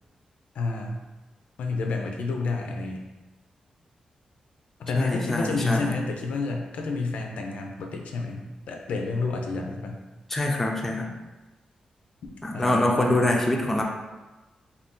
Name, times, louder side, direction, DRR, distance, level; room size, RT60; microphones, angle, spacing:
voice 1, 0.5-1.0 1.6-3.0 4.8-10.0 12.5-13.4, left 3 dB, 85° left, 2 dB, 0.4 m, -30 dB
voice 2, 4.9-5.9 10.3-11.1 12.4-13.8, left 1 dB, 10° left, 0 dB, 0.3 m, -24 dB
2.6 x 2.3 x 3.6 m, 1.1 s
wide cardioid pair, 160°, 2 cm